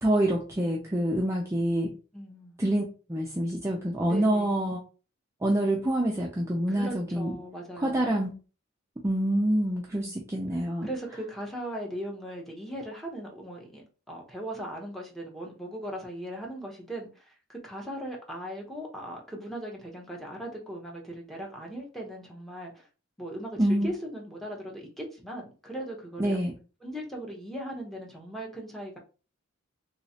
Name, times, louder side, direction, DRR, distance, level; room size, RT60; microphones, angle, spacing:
voice 1, 0.0-1.9 2.6-4.8 5.4-7.4 7.8-8.3 9.0-10.9 23.6-23.9 26.2-26.5, right 1 dB, 15° right, -2 dB, 0.5 m, -26 dB
voice 2, 2.1-2.6 4.1-4.7 6.7-8.2 9.9-10.2 10.8-22.9 23.2-26.4 26.8-29.0, right 1 dB, ahead, -1 dB, 0.8 m, -39 dB
3.1 x 3.0 x 2.7 m, 0.35 s
head